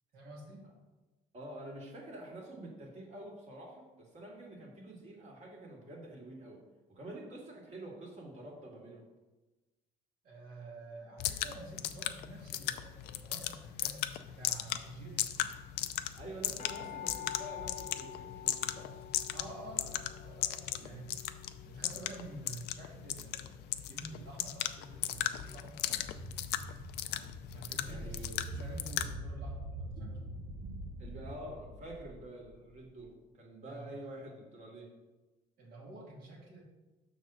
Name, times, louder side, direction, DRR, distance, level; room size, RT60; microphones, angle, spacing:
voice 1, 0.1-0.7 10.2-15.2 19.3-21.1 21.7-26.0 27.5-30.2 33.7-34.0 35.6-36.6, right 2 dB, 60° right, -3 dB, 1.8 m, -49 dB
voice 2, 1.3-6.6 6.9-9.1 16.1-19.1 20.7-20.9 27.9-28.4 31.0-34.9, right 1 dB, 45° right, -1 dB, 2.1 m, -47 dB
sound 1, 11.2-29.1, left 12 dB, 75° left, 0.5 m, -38 dB
sound 2, 13.4-13.8 14.6-14.7 14.9-15.0 15.2-22.8 23.3-23.4, left 11 dB, 45° left, 0.8 m, -48 dB
sound 3, 25.9-33.0, right 1 dB, 85° right, 1.0 m, -44 dB
6.3 x 3.9 x 6.1 m, 1.1 s
cardioid pair, 110°, 17 cm